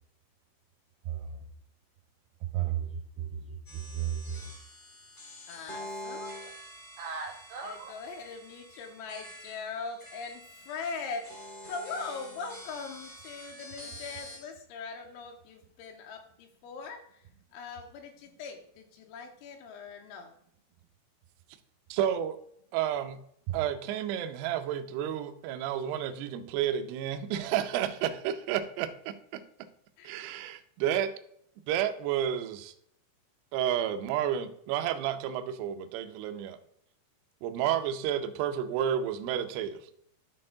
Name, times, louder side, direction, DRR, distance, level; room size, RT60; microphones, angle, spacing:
voice 1, 1.0-1.4 2.4-4.5 7.0-7.9 23.5-23.6, right 9 dB, 70° right, -1 dB, 2.6 m, -35 dB
sound 1, 3.6-14.4, left 1 dB, 25° left, 1.1 m, -46 dB
voice 2, 5.5-6.5 7.6-17.2 17.5-20.3 30.0-30.1, left 4 dB, 85° left, 2 dB, 3.2 m, -41 dB
voice 3, 21.9-22.4 22.7-23.2 23.5-29.4 30.0-31.1 31.7-32.7 33.5-36.6 37.4-39.8, right 10 dB, 90° right, 7 dB, 2.3 m, -31 dB
12.5 x 4.3 x 3.7 m, 0.69 s
omnidirectional pair, 5.6 m